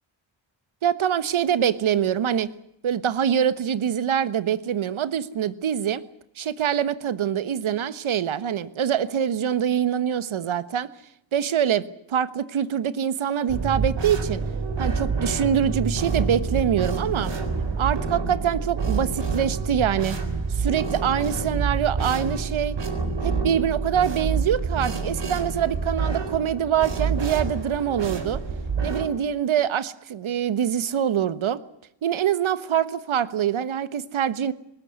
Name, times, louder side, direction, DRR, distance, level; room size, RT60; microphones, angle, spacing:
voice 1, 0.8-2.5 2.8-6.0 6.4-10.9 11.3-14.4 14.8-17.3 17.8-20.2 20.5-22.8 23.2-28.4 28.8-31.6 32.0-34.5, right 9 dB, 80° right, 15 dB, 1.4 m, -24 dB
sound 1, 13.5-29.1, right 4 dB, 65° right, 4.3 m, -27 dB
20.0 x 19.0 x 9.5 m, 0.75 s
wide cardioid pair, 105°, 47 cm